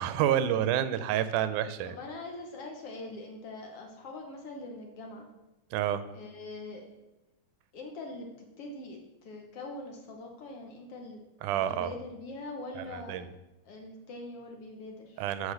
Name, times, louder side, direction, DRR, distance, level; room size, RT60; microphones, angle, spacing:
voice 1, 0.0-2.0 5.7-6.0 11.4-11.9 12.8-13.3 15.2-15.5, right 10 dB, 90° right, 13 dB, 2.1 m, -29 dB
voice 2, 1.9-5.3 6.1-7.0 7.7-8.3 8.6-11.2 11.5-13.2 13.6-15.2, left 2 dB, 60° left, 2 dB, 1.8 m, -43 dB
8.2 x 6.0 x 6.5 m, 0.99 s
omnidirectional pair, 3.5 m